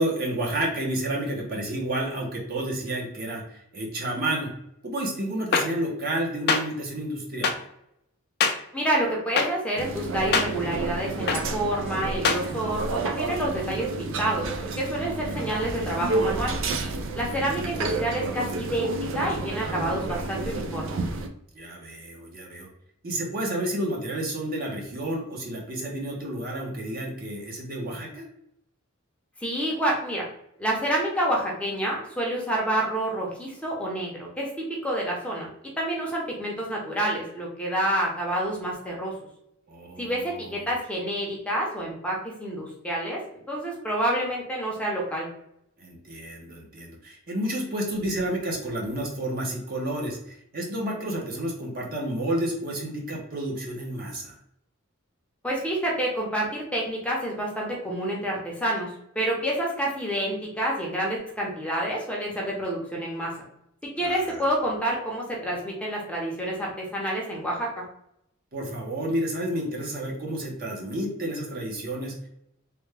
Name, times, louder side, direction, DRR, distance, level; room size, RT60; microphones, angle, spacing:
voice 1, 0.0-4.5 4.8-7.6 15.0-15.5 17.3-17.6 21.5-22.7 23.0-28.3 39.7-40.2 45.8-54.3 64.0-64.3 68.5-72.1, right 1 dB, 45° right, -1 dB, 0.8 m, -30 dB
sound 1, 5.5-5.6 6.5-6.6 7.4-7.5 8.4-8.5 9.4-9.5 10.3-10.5 11.3-11.4 12.2-12.4, left 5 dB, 50° left, 0.4 m, -21 dB
voice 2, 8.7-14.5 14.8-16.5 17.2-21.0 29.4-30.3 30.6-35.5 35.8-39.1 40.0-43.2 43.5-45.3 55.4-63.3 63.8-67.8, right 1 dB, 5° left, -3 dB, 0.7 m, -28 dB
sound 2, 9.8-21.3, right 3 dB, 65° right, 0.4 m, -30 dB
3.4 x 2.2 x 3.2 m, 0.77 s
head